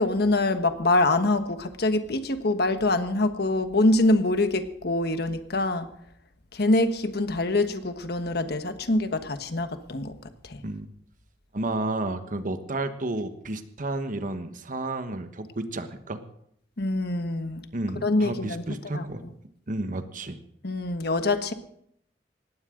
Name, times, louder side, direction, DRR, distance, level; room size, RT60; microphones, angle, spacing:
voice 1, 0.0-5.9 6.5-10.1 10.4-10.6 16.8-17.6 18.0-18.6 18.9-19.0 20.6-21.5, left 2 dB, 65° left, 8 dB, 1.4 m, -24 dB
voice 2, 11.5-16.2 17.7-19.2 19.7-20.4, right 2 dB, 50° right, 9 dB, 1.3 m, -31 dB
19.0 x 15.5 x 3.9 m, 0.71 s
head